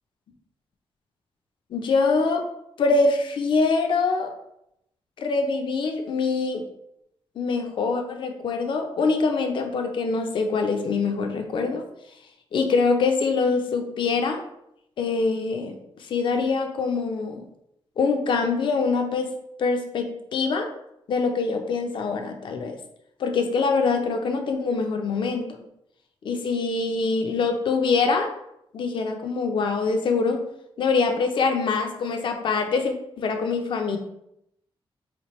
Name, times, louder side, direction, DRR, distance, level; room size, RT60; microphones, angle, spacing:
voice 1, 1.7-2.5 2.8-4.3 5.2-6.6 7.4-11.8 12.5-14.4 15.0-15.8 16.1-17.4 18.0-19.3 19.6-20.7 21.1-22.8 23.2-25.6 26.2-28.3 28.7-30.4 30.8-34.0, left 4 dB, 55° left, 4 dB, 0.5 m, -24 dB
4.1 x 2.9 x 3.0 m, 0.79 s
wide cardioid pair, 145°, 10 cm